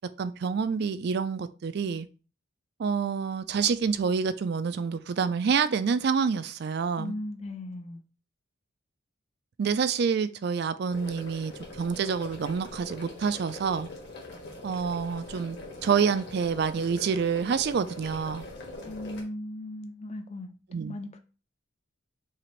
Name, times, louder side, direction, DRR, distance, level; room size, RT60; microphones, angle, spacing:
voice 1, 0.2-2.1 2.8-7.1 9.6-13.9 14.6-15.6 15.8-18.4 20.7-21.0, right 6 dB, 55° right, 0.3 m, -27 dB
voice 2, 7.0-8.0 18.8-20.5 20.9-21.2, left 1 dB, 30° left, 0.5 m, -37 dB
sound 1, 10.9-19.2, left 2 dB, 55° left, 1.4 m, -43 dB
5.6 x 2.6 x 3.1 m
head